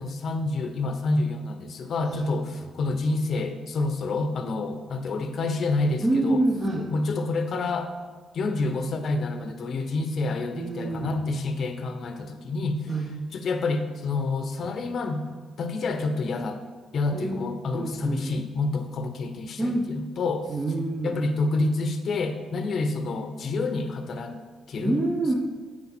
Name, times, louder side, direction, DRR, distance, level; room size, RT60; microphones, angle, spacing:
voice 1, 0.0-6.4 6.9-7.9 8.3-12.9 13.3-15.2 15.6-16.6 16.9-20.6 21.0-24.4 24.7-25.0, left 3 dB, 60° left, 8 dB, 0.7 m, -28 dB
voice 2, 6.0-6.8 10.5-11.2 12.9-13.1 17.1-18.2 19.6-19.9 20.5-21.2 24.8-25.3, right 2 dB, 30° right, -3 dB, 1.0 m, -27 dB
8.3 x 4.7 x 4.4 m, 1.4 s
cardioid pair, 90°, 0 cm